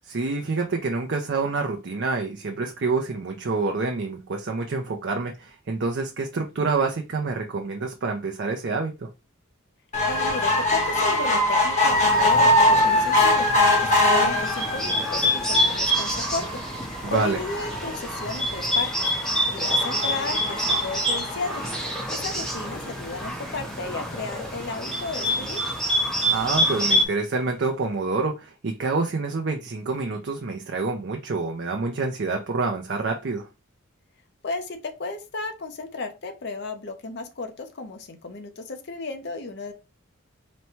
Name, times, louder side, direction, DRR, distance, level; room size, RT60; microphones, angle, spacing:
voice 1, 0.0-9.1 17.0-17.4 26.2-33.5, right 3 dB, 55° right, 0.5 m, -27 dB
sound 1, 9.9-22.5 23.1-23.2 23.5-23.6 23.8-23.9, left 1 dB, 35° left, 1.2 m, -23 dB
voice 2, 10.1-13.5 13.8-16.6 17.0-19.1 19.5-21.6 22.1-25.6 34.4-39.7, left 3 dB, 50° left, 0.7 m, -34 dB
Bird, 11.8-27.0, equal, 5° left, 0.6 m, -27 dB
4.1 x 2.2 x 4.4 m
head